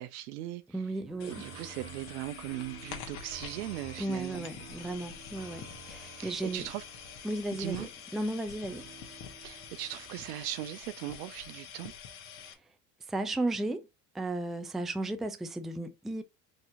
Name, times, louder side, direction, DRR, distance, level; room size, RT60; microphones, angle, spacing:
voice 1, 0.0-0.6 1.2-4.5 6.1-6.8 7.5-7.9 9.4-11.9, right 14 dB, 75° right, 0.7 m, -39 dB
voice 2, 0.7-1.5 4.0-6.7 7.2-7.9 8.1-8.9 13.1-13.9 14.1-16.2, right 2 dB, ahead, 0.4 m, -34 dB
sound 1, 1.1-10.2, right 7 dB, 55° right, 1.5 m, -51 dB
sound 2, 1.2-12.5, left 8 dB, 50° left, 1.3 m, -47 dB
4.6 x 2.9 x 2.6 m
hypercardioid pair, 80°, 48 cm